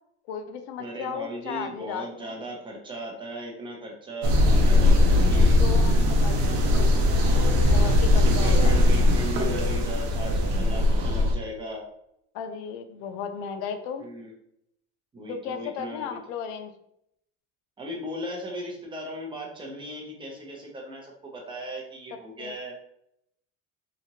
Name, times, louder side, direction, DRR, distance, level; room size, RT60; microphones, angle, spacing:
voice 1, 0.3-2.4 5.3-6.6 7.7-8.8 12.3-14.1 15.3-16.7 22.4-22.5, left 7 dB, 75° left, 8 dB, 0.5 m, -35 dB
voice 2, 0.8-5.6 7.0-7.6 8.2-11.8 14.0-14.3 15.1-16.2 17.8-22.8, equal, 15° right, -1 dB, 0.7 m, -37 dB
sound 1, 4.2-11.3, left 1 dB, 55° right, 0.7 m, -20 dB
3.0 x 2.4 x 2.7 m, 0.76 s
cardioid pair, 135°, 35 cm